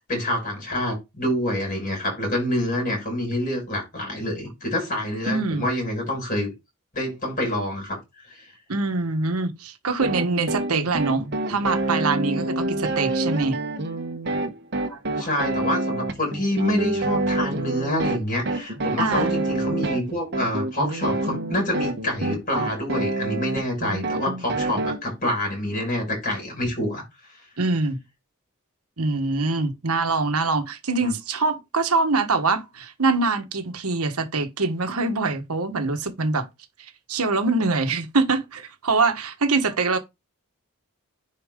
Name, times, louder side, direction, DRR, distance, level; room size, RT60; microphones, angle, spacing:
voice 1, 0.1-6.5 6.9-8.0 8.3-8.5 15.2-27.0 31.0-31.1, left 1 dB, 40° left, 6.1 m, -27 dB
voice 2, 5.3-5.6 8.7-13.6 14.9-15.0 19.0-19.3 27.6-28.0 29.0-36.5 37.1-40.0, right 3 dB, 80° right, 1.4 m, -24 dB
sound 1, 10.0-25.0, right 2 dB, 50° right, 1.1 m, -27 dB
10.0 x 4.4 x 3.7 m
head